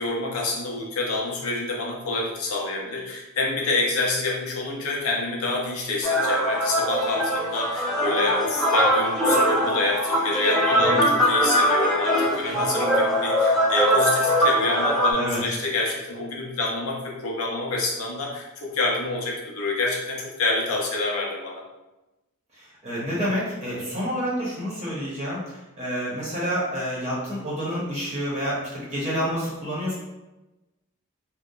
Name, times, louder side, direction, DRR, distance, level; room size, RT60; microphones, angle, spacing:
voice 1, 0.0-21.6, left 3 dB, 80° left, -2 dB, 0.6 m, -27 dB
sound 1, 6.0-15.1, equal, ahead, 0.4 m, -22 dB
voice 2, 10.7-11.1 15.1-15.4 22.5-29.9, equal, 30° right, -7 dB, 0.7 m, -29 dB
2.7 x 2.1 x 2.3 m, 1.0 s
head